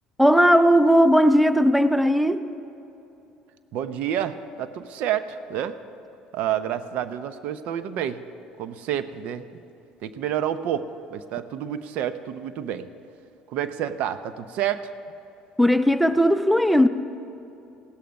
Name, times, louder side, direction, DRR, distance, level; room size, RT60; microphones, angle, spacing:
voice 1, 0.2-2.5 15.6-16.9, equal, ahead, 0.5 m, -17 dB
voice 2, 3.7-5.7 6.3-8.2 8.6-9.5 10.0-12.9 13.5-14.9, right 10 dB, 65° right, 0.6 m, -29 dB
16.0 x 12.5 x 5.3 m
supercardioid pair, 90°, 2 cm